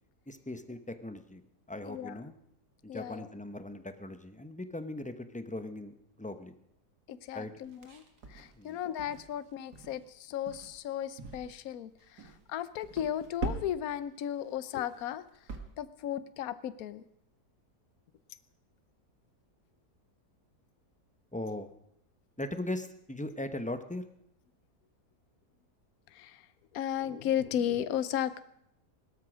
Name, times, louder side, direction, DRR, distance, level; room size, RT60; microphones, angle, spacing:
voice 1, 0.3-1.4 1.7-2.3 2.8-6.6 7.3-7.5 8.6-8.8 21.3-21.7 22.4-24.1, left 1 dB, 10° left, 9 dB, 0.5 m, -39 dB
voice 2, 1.9-2.2 2.9-3.3 7.1-8.0 8.3-15.3 15.8-17.0 26.1-26.5 26.7-28.4, left 10 dB, 65° left, 14 dB, 1.2 m, -35 dB
sound 1, 7.6-9.4 9.7-10.0 10.5-10.8 11.2-11.7 12.0-12.4 12.8-14.0 14.3-14.5 14.9-15.6, right 4 dB, 75° right, 2.2 m, -42 dB
18.0 x 13.0 x 6.3 m, 0.77 s
omnidirectional pair, 1.7 m